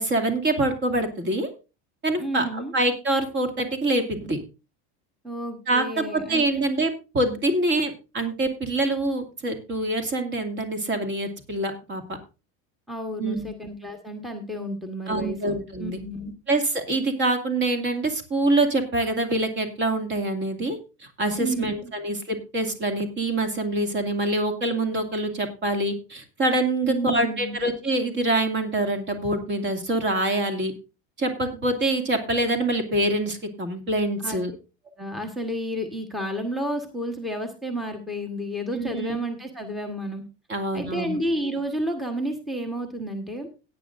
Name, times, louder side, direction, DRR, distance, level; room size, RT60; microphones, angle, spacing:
voice 1, 0.0-1.5 2.0-4.4 5.7-12.0 13.2-13.5 15.1-16.0 16.5-30.7 31.2-34.5 38.7-39.2 40.5-41.2, right 2 dB, 30° right, 6 dB, 2.4 m, -25 dB
voice 2, 2.2-2.7 5.2-6.7 12.9-15.4 15.8-16.3 21.4-21.9 26.8-27.6 34.2-34.4 35.0-40.2 40.7-43.5, right 1 dB, ahead, 2 dB, 1.3 m, -31 dB
17.5 x 9.4 x 2.5 m, 0.30 s
supercardioid pair, 140°, 35 cm